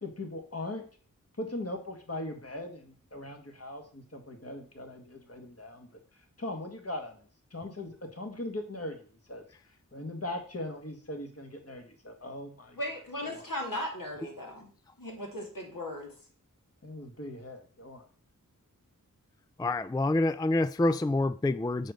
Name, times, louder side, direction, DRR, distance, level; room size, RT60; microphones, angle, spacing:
voice 1, 0.0-0.9 1.4-6.0 6.4-9.4 9.9-12.8 13.2-13.5 16.8-18.1, left 1 dB, 45° left, 1.8 m, -40 dB
voice 2, 12.8-14.7 15.0-16.1, left 1 dB, 70° left, 3.0 m, -37 dB
voice 3, 19.6-21.9, left 2 dB, 10° left, 0.3 m, -27 dB
7.6 x 5.1 x 6.5 m
wide cardioid pair, 50°, 34 cm